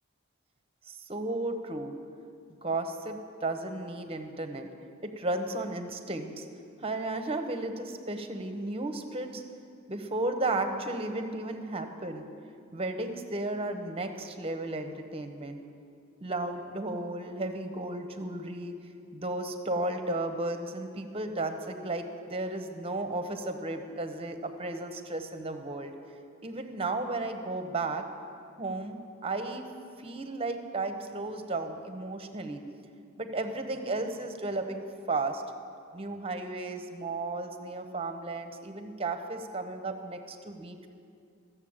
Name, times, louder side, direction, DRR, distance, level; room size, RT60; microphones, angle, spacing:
voice 1, 0.9-1.9 2.6-4.7 5.0-6.4 6.8-9.4 9.9-12.3 12.7-15.6 16.2-18.7 19.1-25.9 26.4-28.0 28.6-29.7 30.0-32.6 33.2-35.4 35.9-40.9, right 2 dB, 30° right, 7 dB, 0.9 m, -34 dB
14.0 x 7.0 x 8.7 m, 2.4 s
head